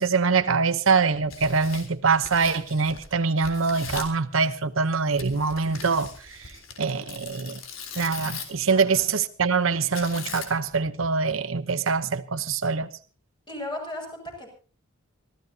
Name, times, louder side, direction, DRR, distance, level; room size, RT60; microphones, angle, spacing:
voice 1, 0.0-6.1 6.8-7.6 8.0-12.9, right 4 dB, 75° right, 0.9 m, -24 dB
Tearing, 1.1-3.1 3.4-4.2 5.2-8.7 9.9-10.7, left 6 dB, 75° left, 3.7 m, -39 dB
voice 2, 8.7-9.0 13.5-14.5, left 1 dB, 25° left, 7.5 m, -36 dB
25.5 x 15.5 x 2.8 m
head